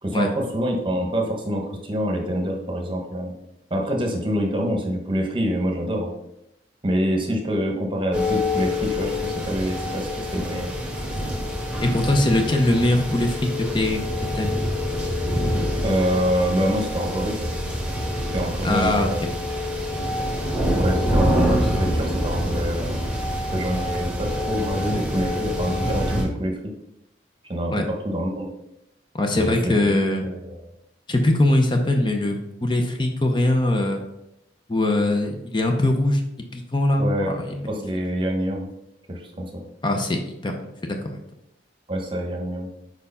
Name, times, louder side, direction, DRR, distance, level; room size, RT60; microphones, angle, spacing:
voice 1, 0.0-3.3 3.7-6.1 6.8-10.7 15.8-17.4 18.3-19.2 20.8-23.0 23.5-26.6 27.5-28.5 29.3-29.9 30.3-30.6 37.0-37.3 37.7-38.7 39.1-39.6 41.9-42.7, equal, 30° right, 2 dB, 1.0 m, -26 dB
sound 1, 8.1-26.2, left 1 dB, 5° right, 1.4 m, -26 dB
voice 2, 11.8-14.0 14.3-14.6 18.6-19.3 27.7-27.8 29.1-30.3 31.1-34.0 34.7-36.2 36.5-37.8 39.8-41.2, left 1 dB, 25° left, 3 dB, 0.6 m, -22 dB
4.8 x 4.6 x 5.5 m, 0.86 s
head